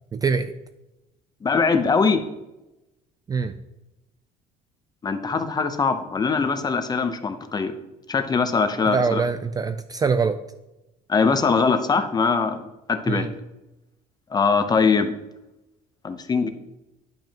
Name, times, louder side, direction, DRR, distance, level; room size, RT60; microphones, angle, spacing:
voice 1, 0.1-0.5 3.3-3.5 8.9-10.4 13.1-13.3, right 5 dB, 20° right, 10 dB, 0.3 m, -23 dB
voice 2, 1.4-2.2 5.0-7.7 8.1-9.2 11.1-12.6 12.9-13.3 14.3-15.1 16.0-16.5, left 5 dB, 25° left, 9 dB, 0.7 m, -22 dB
10.5 x 5.8 x 2.9 m, 0.97 s
cardioid pair, 130°, 17 cm